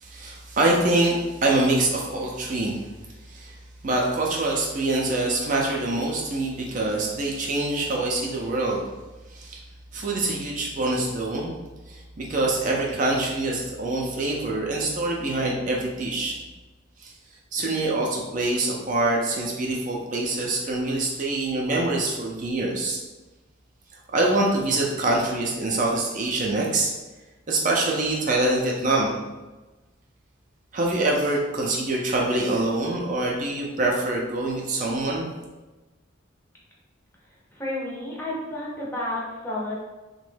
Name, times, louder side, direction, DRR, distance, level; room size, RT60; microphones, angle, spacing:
voice 1, 0.0-2.9 3.3-3.5 3.8-8.8 9.3-9.6 9.9-11.6 11.9-16.3 17.0-17.1 17.5-23.0 24.1-26.9 27.5-29.2 30.7-35.3, right 2 dB, 40° right, -2 dB, 0.4 m, -25 dB
voice 2, 37.5-39.8, left 1 dB, 10° left, -5 dB, 0.6 m, -31 dB
3.0 x 2.2 x 3.2 m, 1.1 s
head